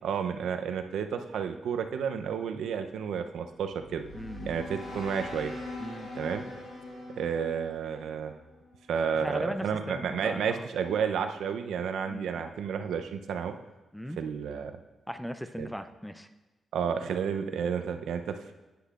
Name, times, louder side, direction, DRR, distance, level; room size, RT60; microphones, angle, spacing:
voice 1, 0.0-4.0 4.5-5.5 6.2-6.5 7.2-8.3 8.9-13.5 14.2-14.7 15.6-15.7 16.7-18.5, right 7 dB, 85° right, 7 dB, 0.5 m, -31 dB
sound 1, 3.6-8.8, left 2 dB, 60° left, 3.2 m, -42 dB
voice 2, 4.1-4.6 5.8-6.1 9.1-10.7 12.1-12.4 13.9-14.2 15.1-16.3, equal, ahead, 10 dB, 0.3 m, -38 dB
10.0 x 9.3 x 2.4 m, 1.1 s
wide cardioid pair, 170°, 0 cm